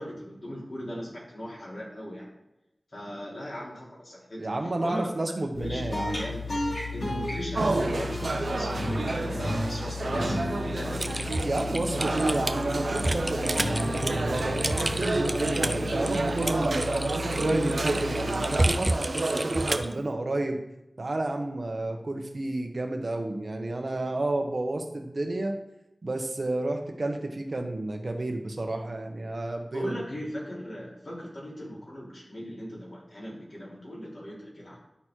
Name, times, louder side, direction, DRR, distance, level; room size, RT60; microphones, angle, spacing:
voice 1, 0.0-2.3 2.9-4.5 4.8-5.1 5.6-6.4 6.9-11.0 29.7-34.8, equal, 60° left, -5 dB, 3.3 m, -38 dB
voice 2, 4.4-6.2 11.4-17.0 17.3-20.6 21.0-25.6 26.0-30.0, right 2 dB, 65° right, 3 dB, 1.2 m, -31 dB
sound 1, 5.5-19.1, left 2 dB, 80° left, 3.3 m, -34 dB
sound 2, 7.5-19.8, right 2 dB, 85° right, 0.7 m, -30 dB
Typing, 11.0-19.9, right 1 dB, 35° right, 0.6 m, -30 dB
11.5 x 4.2 x 4.6 m, 0.91 s
wide cardioid pair, 55°, 0 cm